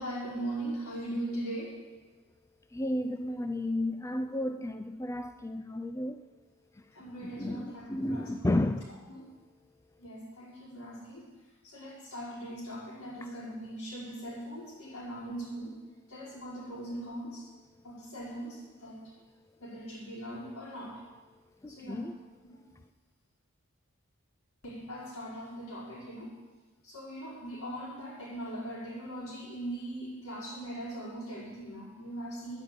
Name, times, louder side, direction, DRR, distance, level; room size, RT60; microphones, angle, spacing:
voice 1, 0.0-1.8 6.9-8.6 9.1-9.3 10.0-11.3 11.6-15.8 16.1-17.5 17.8-19.0 19.6-21.0 21.7-22.1 22.5-22.7 24.6-26.4 26.8-32.6, right 1 dB, 80° left, 5.4 m, -40 dB
voice 2, 2.7-6.2 6.8-6.9 7.2-8.9 21.6-22.1, left 1 dB, 15° left, 0.3 m, -32 dB
10.0 x 9.8 x 8.5 m
head